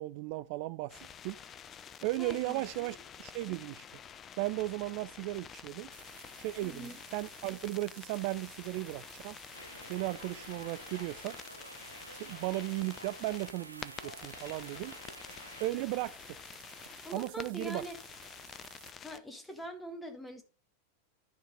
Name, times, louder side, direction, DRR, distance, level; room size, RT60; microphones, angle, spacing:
voice 1, 0.0-1.4 2.0-3.8 4.4-5.9 6.4-9.4 9.9-11.4 12.1-14.9 15.6-16.2 17.1-17.8, right 18 dB, 45° right, 0.3 m, -36 dB
sound 1, 0.9-19.2, left 8 dB, 25° left, 0.6 m, -49 dB
voice 2, 2.2-3.0 6.6-7.0 17.0-18.0 19.0-20.4, equal, 5° left, 1.9 m, -43 dB
sound 2, 5.9-18.9, right 8 dB, 60° right, 1.0 m, -55 dB
sound 3, 9.5-15.7, equal, 90° left, 1.0 m, -50 dB
11.5 x 4.6 x 5.2 m
figure-of-eight pair, 90°, 0 cm